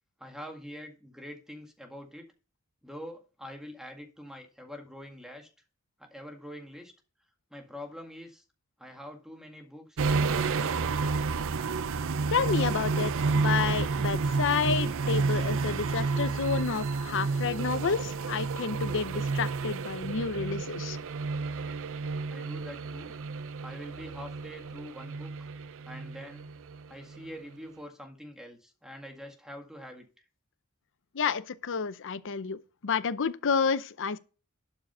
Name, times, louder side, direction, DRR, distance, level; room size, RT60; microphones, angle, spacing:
voice 1, 0.2-2.3 2.8-5.5 6.0-6.9 7.5-8.4 8.8-11.0 22.3-23.1 23.6-25.5 25.8-26.5 26.9-30.2, equal, ahead, 1.9 m, -45 dB
sound 1, 10.0-26.9 27.1-27.3, right 4 dB, 65° right, 0.5 m, -30 dB
voice 2, 12.3-21.0 31.1-34.2, left 5 dB, 60° left, 0.7 m, -30 dB
11.5 x 5.0 x 5.5 m
head